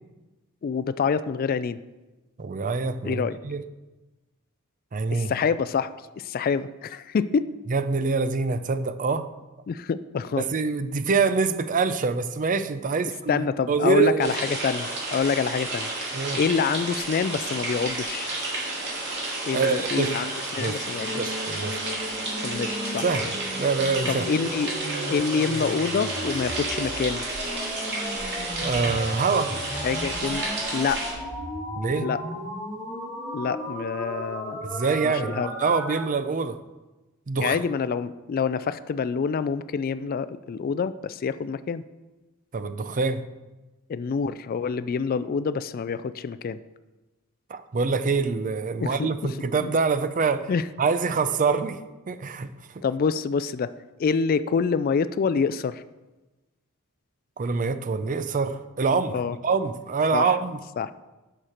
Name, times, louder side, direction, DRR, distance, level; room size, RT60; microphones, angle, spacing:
voice 1, 0.6-1.8 3.0-3.4 5.1-5.9 6.2-7.5 9.7-10.5 13.3-15.9 16.3-18.3 19.4-21.2 22.4-23.0 24.1-24.8 25.1-27.2 29.8-30.5 30.7-31.0 32.0-32.2 33.3-34.6 35.0-35.5 37.4-41.8 43.9-46.6 48.8-49.1 49.6-49.7 50.5-50.6 52.8-53.7 54.0-55.8 59.1-59.4 60.1-60.3 60.8-60.9, left 5 dB, 45° left, 14 dB, 0.3 m, -26 dB
voice 2, 2.4-3.6 4.9-5.3 7.7-9.3 10.4-14.6 16.1-16.4 19.5-20.1 20.6-20.8 21.2-21.8 23.0-23.3 23.6-24.3 28.6-29.5 31.8-32.1 34.6-36.6 37.3-37.6 42.5-43.2 47.5-50.5 50.8-51.8 52.1-52.8 57.4-60.6, right 4 dB, 40° right, 12 dB, 0.5 m, -25 dB
sound 1, 14.2-31.1, right 2 dB, 55° right, 2.7 m, -31 dB
sound 2, 21.0-36.0, equal, 5° right, 3.3 m, -35 dB
11.0 x 6.6 x 4.3 m, 1.1 s
head